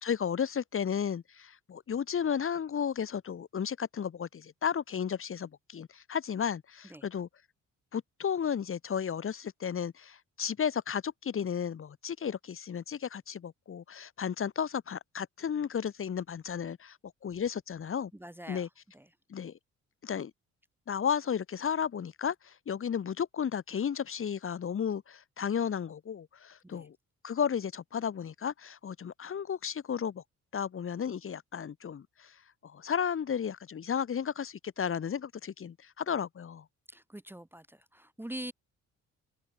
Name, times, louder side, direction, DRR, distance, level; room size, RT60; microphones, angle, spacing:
voice 1, 0.0-7.3 7.9-17.0 17.2-18.1 18.5-18.7 19.3-19.6 20.0-20.3 20.9-27.0 27.2-30.2 30.5-32.4 32.6-36.6, left 7 dB, 45° left, 1.6 m, -33 dB
voice 2, 18.1-18.7 18.9-19.0 26.6-26.9 36.9-38.5, right 1 dB, 5° right, 1.2 m, -44 dB
open air
cardioid pair, 90°, 30 cm